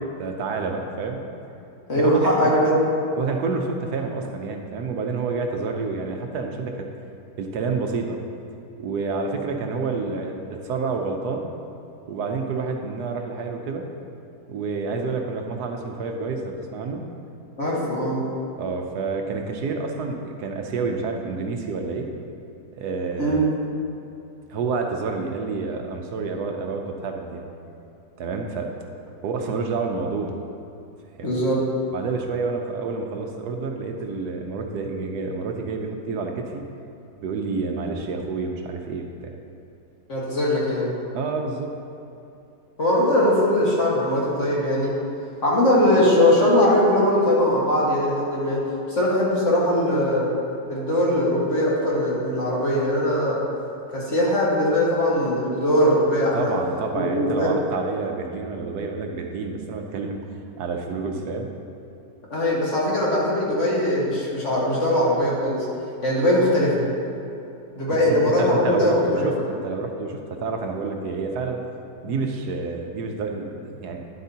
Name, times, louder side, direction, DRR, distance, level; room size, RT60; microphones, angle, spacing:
voice 1, 0.2-1.2 2.0-2.5 3.2-6.9 7.4-8.2 8.8-11.5 12.1-13.8 14.5-17.0 18.6-22.1 22.7-23.5 24.5-27.5 28.2-28.7 29.2-30.4 31.2-31.3 31.9-36.6 37.2-39.3 41.1-41.7 56.3-60.3 60.6-61.5 68.1-71.6 72.0-74.0, right 4 dB, 75° right, 3 dB, 1.2 m, -28 dB
voice 2, 1.9-2.7 17.6-18.2 23.2-23.5 31.2-31.6 40.1-40.9 42.8-44.9 45.4-48.6 48.9-50.3 50.7-53.4 53.9-56.5 56.9-57.5 62.3-65.7 66.0-66.8 67.8-69.3 72.0-72.2, left 1 dB, 45° left, -5 dB, 1.8 m, -20 dB
10.5 x 8.0 x 2.8 m, 2.8 s
omnidirectional pair, 1.8 m